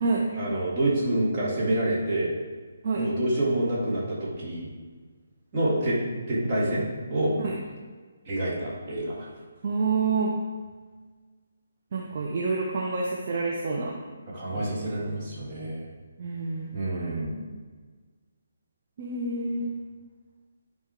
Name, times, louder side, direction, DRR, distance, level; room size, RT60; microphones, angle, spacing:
voice 1, 0.4-2.3 2.9-4.7 5.5-6.0 6.3-7.3 8.3-9.1 14.3-15.8 16.7-17.4, right 1 dB, 25° right, -8 dB, 2.2 m, -27 dB
voice 2, 9.6-10.3 11.9-14.0 14.5-14.8 16.2-16.6 19.0-19.7, right 4 dB, 40° right, -2 dB, 0.8 m, -28 dB
11.0 x 4.6 x 3.5 m, 1.5 s
figure-of-eight pair, 140°, 0 cm